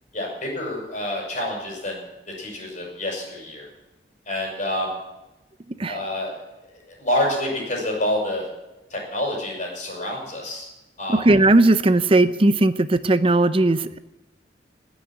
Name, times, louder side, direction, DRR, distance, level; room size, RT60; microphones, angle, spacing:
voice 1, 0.1-2.1 2.4-3.7 4.3-5.0 5.9-6.3 7.0-8.4 8.9-10.7 11.0-11.2, left 1 dB, 45° left, -1 dB, 6.0 m, -27 dB
voice 2, 11.1-14.0, right 2 dB, 30° right, 13 dB, 0.6 m, -17 dB
18.5 x 6.4 x 9.2 m, 1.0 s
head